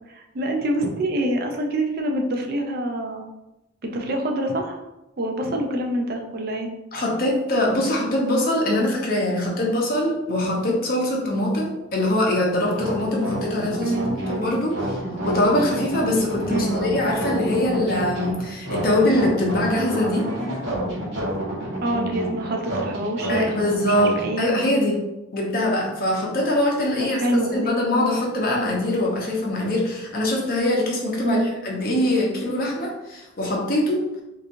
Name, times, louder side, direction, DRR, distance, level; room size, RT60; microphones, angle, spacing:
voice 1, 0.1-3.2 3.8-4.8 5.2-6.7 13.8-14.2 16.5-16.7 21.8-24.5 27.1-27.7 31.2-31.6, right 1 dB, 50° right, 2 dB, 0.4 m, -26 dB
voice 2, 6.9-13.9 14.3-20.3 23.3-25.0 25.3-34.0, left 1 dB, 45° left, -2 dB, 0.7 m, -23 dB
sound 1, 12.7-24.3, right 1 dB, 65° right, 1.2 m, -29 dB
3.6 x 2.9 x 2.5 m, 0.95 s
head